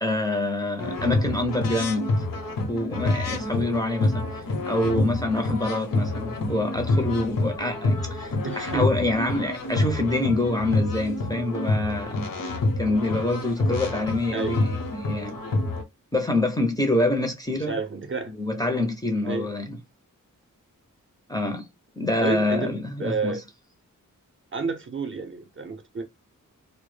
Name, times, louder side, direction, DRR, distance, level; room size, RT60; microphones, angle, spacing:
voice 1, 0.0-2.3 2.7-12.2 12.8-15.4 16.1-17.8 18.3-19.8 21.3-21.7 22.0-23.4, left 2 dB, 10° left, 0.4 m, -26 dB
sound 1, 0.8-15.8, left 2 dB, 75° left, 0.7 m, -27 dB
voice 2, 8.4-8.9 14.3-14.6 17.7-18.3 19.2-19.5 22.2-23.4 24.5-26.0, right 4 dB, 40° right, 0.5 m, -30 dB
2.1 x 2.0 x 3.1 m
wide cardioid pair, 95°, 33 cm